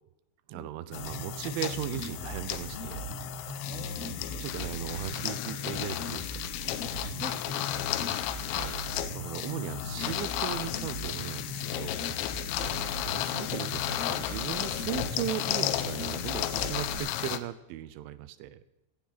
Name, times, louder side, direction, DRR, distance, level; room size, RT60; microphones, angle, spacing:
voice 1, 0.5-3.1 4.4-6.5 8.5-12.1 13.1-18.6, right 12 dB, 85° right, 13 dB, 3.1 m, -37 dB
sound 1, 0.9-17.4, left 13 dB, 80° left, 2.9 m, -34 dB
sound 2, 1.0-17.0, right 1 dB, 35° right, 4.8 m, -40 dB
voice 2, 3.6-4.1 7.1-8.4 12.6-12.8, right 2 dB, 5° right, -2 dB, 2.1 m, -45 dB
19.0 x 16.5 x 4.1 m, 0.96 s
omnidirectional pair, 5.5 m